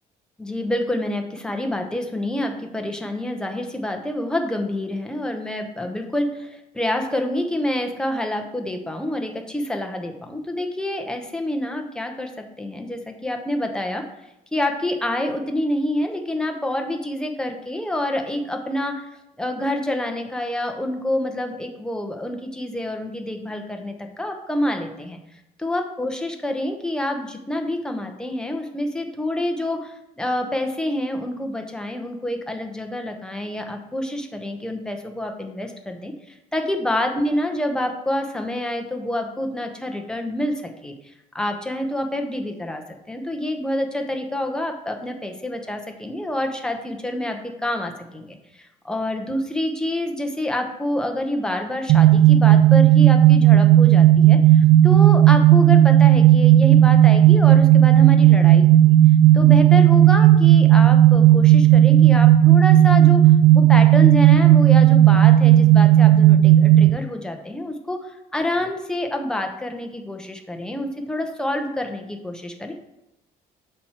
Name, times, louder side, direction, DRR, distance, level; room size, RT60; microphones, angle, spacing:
voice 1, 0.4-12.3 12.6-14.1 14.5-19.1 19.4-25.2 25.6-40.9 41.3-59.0 59.3-63.2 63.5-72.7, left 1 dB, 5° left, 3 dB, 0.8 m, -27 dB
sound 1, 51.9-66.9, right 12 dB, 80° right, 0.4 m, -13 dB
6.3 x 4.3 x 4.3 m, 0.89 s
cardioid pair, 130°, 16 cm